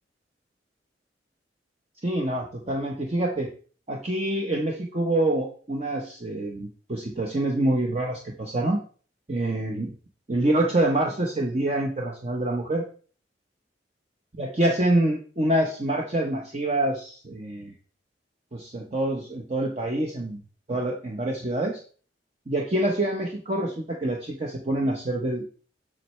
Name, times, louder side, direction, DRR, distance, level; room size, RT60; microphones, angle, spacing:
voice 1, 2.0-3.5 3.9-8.8 9.3-9.9 10.3-12.8 14.4-17.7 18.5-20.4 20.7-21.8 22.5-25.5, right 1 dB, 35° right, 0 dB, 0.9 m, -26 dB
7.5 x 6.3 x 3.2 m, 0.40 s
head